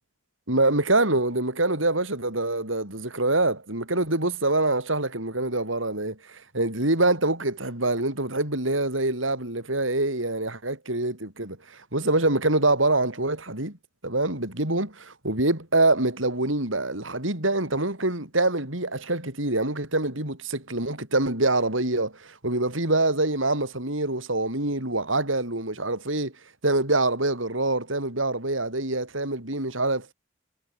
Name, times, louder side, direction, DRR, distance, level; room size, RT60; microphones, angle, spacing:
voice 1, 0.5-11.6 11.9-13.8 14.0-26.3 26.6-30.1, right 2 dB, 85° right, 8.0 m, -25 dB
head